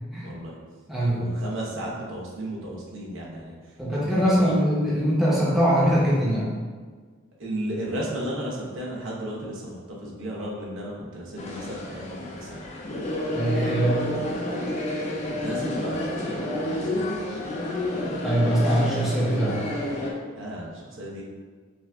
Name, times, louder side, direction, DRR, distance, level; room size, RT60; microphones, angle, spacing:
voice 1, 0.2-0.5 1.1-3.5 3.9-4.6 7.4-12.7 15.2-17.4 20.3-21.2, right 1 dB, 65° right, -4 dB, 0.9 m, -34 dB
voice 2, 0.9-1.2 3.8-6.5 13.3-14.1 18.2-19.6, equal, ahead, -8 dB, 0.7 m, -22 dB
sound 1, 11.4-20.1, left 1 dB, 35° left, 0.4 m, -30 dB
5.9 x 2.5 x 2.3 m, 1.5 s
head